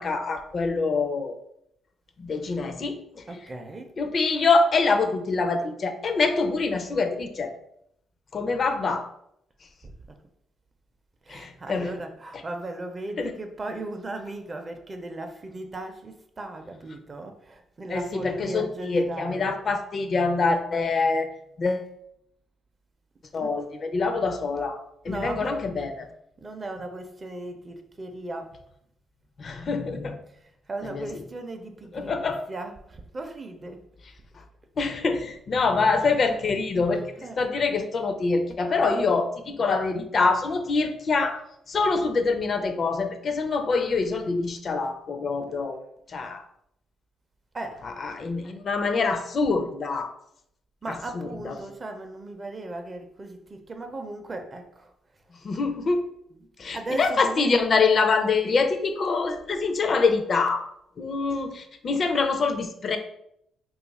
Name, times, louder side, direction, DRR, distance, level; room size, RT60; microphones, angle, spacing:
voice 1, 0.0-1.3 2.2-3.2 4.0-7.5 8.3-9.1 11.3-11.9 13.2-13.3 17.9-21.3 21.6-21.9 23.3-24.8 25.0-26.1 29.4-30.2 30.8-31.1 31.9-32.4 34.8-37.0 37.4-41.4 41.7-45.8 46.1-46.4 48.0-50.1 50.9-51.7 55.4-56.0 56.6-60.6 61.0-63.0, left 4 dB, 45° left, 0.4 m, -25 dB
voice 2, 3.3-3.9 9.8-10.2 11.3-19.6 23.4-23.6 25.0-25.7 26.0-26.1 26.4-28.6 30.7-32.2 32.5-33.8 36.0-36.2 37.0-37.4 47.5-47.9 50.8-54.9 56.3-56.5 56.7-57.6, right 2 dB, 30° right, 0.5 m, -37 dB
2.7 x 2.4 x 4.0 m
cardioid pair, 90°, 0 cm